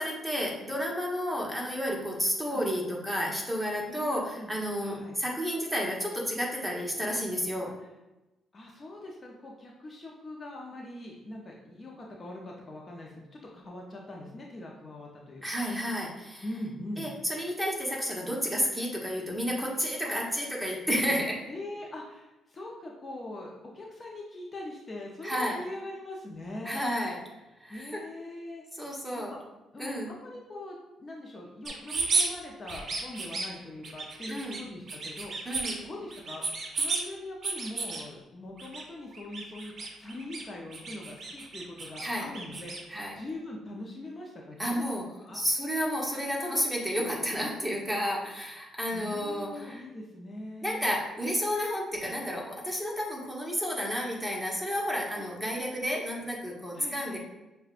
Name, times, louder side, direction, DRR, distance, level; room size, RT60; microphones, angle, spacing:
voice 1, 0.0-7.7 15.4-16.4 17.0-21.4 25.2-25.6 26.6-27.2 27.6-28.0 28.7-29.3 29.8-30.1 34.3-34.6 35.4-35.8 42.0-42.3 42.9-43.1 44.6-45.0 45.3-49.8 50.6-57.2, equal, 5° right, -2 dB, 1.0 m, -31 dB
voice 2, 3.9-4.5 4.8-5.2 8.5-15.7 16.4-17.1 20.0-20.1 21.5-26.8 27.7-28.6 28.9-29.4 29.7-36.5 36.8-44.9 45.2-45.4 48.9-50.9 55.2-55.3 56.7-57.2, left 1 dB, 35° left, -2 dB, 0.6 m, -42 dB
sound 1, 31.6-32.3 32.6-33.5 33.8-34.6 34.9-35.8 36.1-37.0 37.4-38.0 38.6-38.8 39.1-40.4 40.7-42.8, right 3 dB, 50° right, 0.6 m, -33 dB
6.3 x 2.2 x 2.5 m, 1.0 s
cardioid pair, 90°, 0 cm